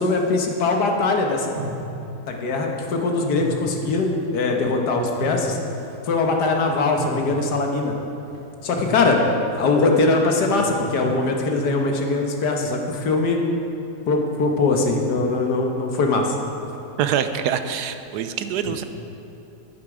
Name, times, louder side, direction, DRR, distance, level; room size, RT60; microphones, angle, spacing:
voice 1, 0.0-1.5 2.3-5.6 6.1-7.9 8.6-9.3 9.6-13.4 14.1-16.4, left 3 dB, 85° left, 2 dB, 1.8 m, -21 dB
sound 1, 1.6-2.4 3.4-4.1 4.5-4.6 5.2-5.9 7.0-7.8 8.1-8.4 8.8-9.4 10.6-11.3, equal, 35° right, 1.2 m, -33 dB
voice 2, 17.0-18.8, right 8 dB, 85° right, 9 dB, 1.2 m, -25 dB
11.0 x 10.5 x 4.9 m, 2.8 s
omnidirectional pair, 1.7 m